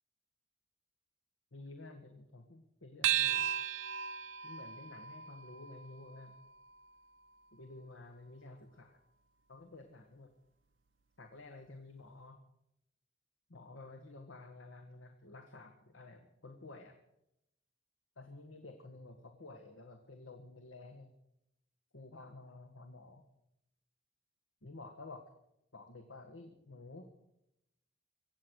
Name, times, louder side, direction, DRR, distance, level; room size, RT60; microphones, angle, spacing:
voice 1, 1.5-3.5 4.4-6.4 7.5-9.0 9.5-10.3 11.2-12.4 13.5-17.0 18.2-21.1 21.9-23.2 24.6-25.2 25.7-27.1, left 2 dB, 90° left, 6 dB, 1.4 m, -52 dB
sound 1, 3.0-7.8, right 11 dB, 75° right, 0.7 m, -37 dB
24.0 x 8.5 x 6.3 m, 0.83 s
head